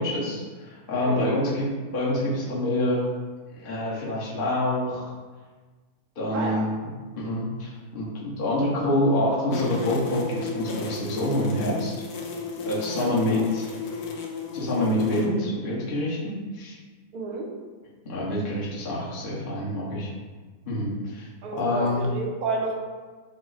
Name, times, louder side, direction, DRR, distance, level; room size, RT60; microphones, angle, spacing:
voice 1, 0.0-1.6 1.9-3.1 3.6-5.1 6.2-11.9 12.6-13.7 14.5-16.8 18.1-20.1 20.7-21.3 21.5-22.0, left 1 dB, 40° left, -7 dB, 1.1 m, -26 dB
voice 2, 1.1-1.4 6.3-6.6 12.9-13.5 17.1-17.5 21.4-22.7, right 3 dB, 70° right, 0 dB, 1.2 m, -31 dB
sound 1, 9.5-15.3, left 4 dB, 75° left, 1.1 m, -33 dB
5.7 x 2.1 x 4.0 m, 1.4 s
omnidirectional pair, 1.7 m